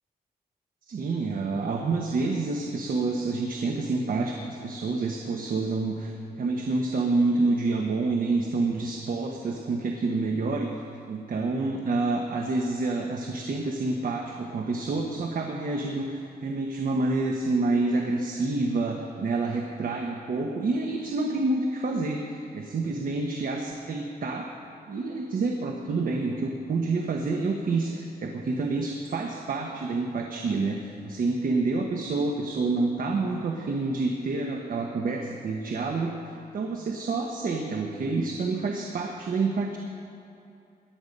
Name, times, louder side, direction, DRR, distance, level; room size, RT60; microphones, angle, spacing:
voice 1, 0.9-10.7 11.1-24.5 24.9-36.1 36.5-39.8, right 3 dB, 60° right, 2 dB, 1.2 m, -28 dB
17.5 x 11.5 x 5.4 m, 2.7 s
wide cardioid pair, 130°, 16 cm